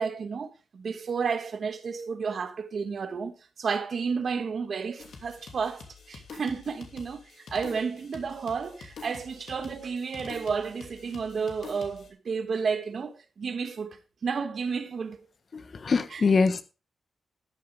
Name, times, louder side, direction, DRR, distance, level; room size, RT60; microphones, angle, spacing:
voice 1, 0.0-15.2 16.1-16.2, right 5 dB, 60° right, 1.3 m, -32 dB
sound 1, 5.0-12.1, left 4 dB, 80° left, 2.8 m, -47 dB
voice 2, 15.5-16.6, left 4 dB, 50° left, 1.2 m, -24 dB
13.5 x 9.5 x 3.5 m
wide cardioid pair, 105°, 0 cm